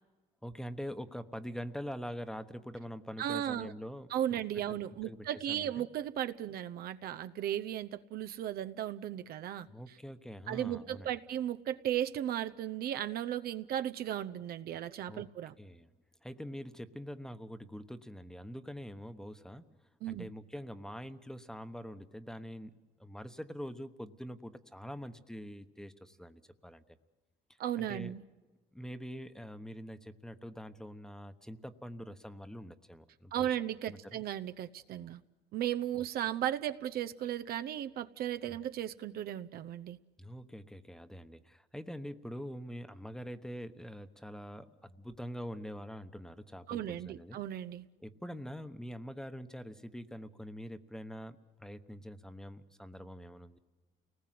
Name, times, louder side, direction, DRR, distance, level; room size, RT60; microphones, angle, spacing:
voice 1, 0.4-4.1 4.7-4.8 5.1-5.8 9.7-11.2 15.1-15.3 15.6-15.9 16.2-19.7 20.1-26.8 27.8-28.1 28.7-33.6 33.9-34.2 35.9-36.1 38.5-38.6 40.2-47.4 48.0-53.6, equal, 5° left, 10 dB, 1.1 m, -44 dB
voice 2, 3.2-3.7 4.1-9.7 10.5-15.5 20.0-20.3 27.6-28.2 33.3-35.2 35.5-40.0 46.7-47.8, right 11 dB, 65° right, 10 dB, 0.8 m, -36 dB
29.0 x 19.5 x 7.7 m, 1.3 s
cardioid pair, 110°, 17 cm